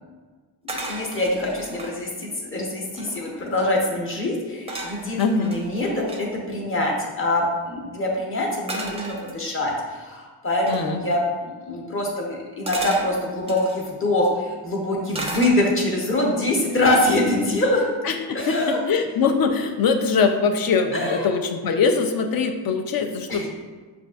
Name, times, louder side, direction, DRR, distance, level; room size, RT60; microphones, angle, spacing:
voice 1, 0.6-17.9 18.3-18.8 20.9-21.3 23.3-23.5, left 1 dB, 30° left, -2 dB, 0.9 m, -24 dB
sound 1, 0.7-2.0 2.6-2.7 2.8-3.5 4.7-6.2 8.7-9.8 10.7-10.9 12.7-13.9 15.1-16.0 16.4-16.8, right 1 dB, 15° right, 0.5 m, -34 dB
voice 2, 5.2-5.5 10.7-11.0 18.0-23.5, left 5 dB, 55° left, 5 dB, 0.5 m, -22 dB
6.3 x 2.5 x 2.3 m, 1.4 s
cardioid pair, 110°, 45 cm